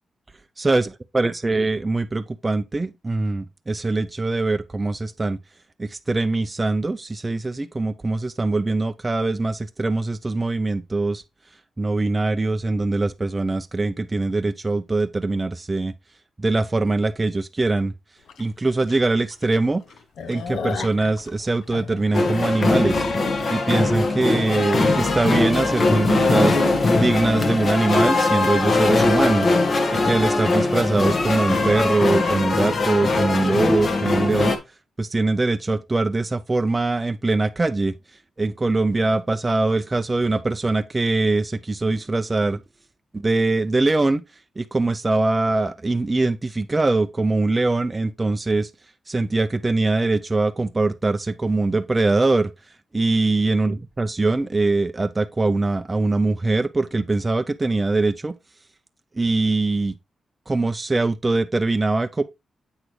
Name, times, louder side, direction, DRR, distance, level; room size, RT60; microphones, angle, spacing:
voice 1, 0.6-5.4 5.8-11.2 11.8-15.9 16.4-17.9 18.4-19.8 20.3-23.0 23.5-26.6 26.9-29.5 29.9-34.6 35.0-37.9 38.4-42.6 43.1-44.2 44.6-48.7 49.1-52.5 52.9-58.3 59.1-59.9 60.5-62.2, right 2 dB, 20° right, 0.4 m, -22 dB
sound 1, 18.3-18.4 18.9-19.0 19.3-19.4 19.8-23.6, left 6 dB, 85° left, 0.8 m, -34 dB
sound 2, 22.1-34.6, left 3 dB, 45° left, 1.2 m, -21 dB
sound 3, 25.3-32.2, left 3 dB, 25° left, 0.9 m, -33 dB
7.9 x 6.1 x 3.1 m
wide cardioid pair, 145°, 0 cm